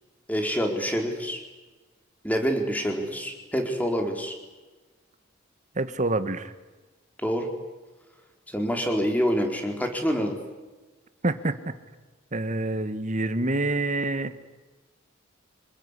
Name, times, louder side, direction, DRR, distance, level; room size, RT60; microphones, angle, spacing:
voice 1, 0.3-1.4 2.2-4.3 7.2-7.5 8.5-10.4, equal, 10° left, 4 dB, 4.3 m, -26 dB
voice 2, 5.7-6.5 11.2-11.7 12.3-14.3, right 2 dB, 40° right, 11 dB, 1.7 m, -27 dB
27.5 x 20.0 x 9.9 m, 1.2 s
head